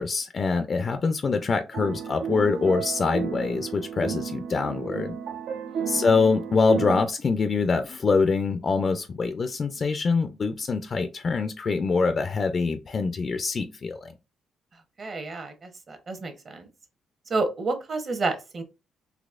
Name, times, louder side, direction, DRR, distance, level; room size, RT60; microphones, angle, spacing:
voice 1, 0.0-5.2 5.9-14.1, left 4 dB, 45° left, 0.3 m, -24 dB
sound 1, 1.7-7.0, right 7 dB, 90° right, 0.6 m, -33 dB
voice 2, 15.0-16.7 17.3-18.6, right 3 dB, 45° right, 0.9 m, -30 dB
4.0 x 2.7 x 2.4 m
cardioid pair, 90°, 0 cm